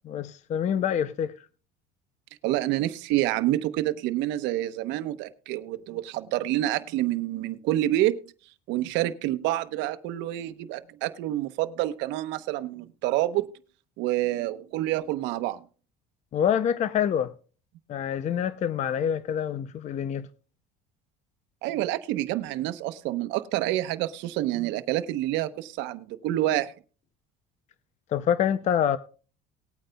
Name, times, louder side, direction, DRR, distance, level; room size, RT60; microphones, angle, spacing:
voice 1, 0.0-1.3 16.3-17.3 17.9-20.3 28.1-29.0, left 9 dB, 35° left, 0.5 m, -26 dB
voice 2, 2.4-8.2 8.7-13.5 14.0-15.6 21.6-26.7, right 15 dB, 70° right, 0.9 m, -28 dB
19.5 x 8.9 x 2.3 m
cardioid pair, 130°, 19 cm